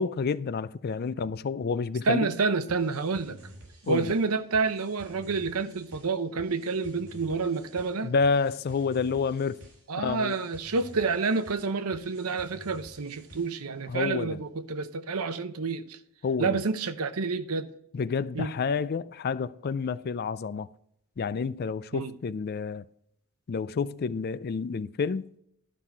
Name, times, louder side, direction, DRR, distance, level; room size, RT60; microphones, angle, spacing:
voice 1, 0.0-2.3 3.9-4.1 8.0-9.6 10.0-10.3 13.9-14.4 16.2-16.6 17.9-20.7 21.2-22.8 23.5-25.3, left 5 dB, 45° left, 0.4 m, -29 dB
voice 2, 2.0-3.4 3.9-8.1 9.9-16.0 16.4-17.7 18.3-18.5 21.9-22.1, right 4 dB, 80° right, 0.8 m, -29 dB
sound 1, 2.7-13.7, equal, 65° right, 4.3 m, -51 dB
12.0 x 5.7 x 4.5 m
head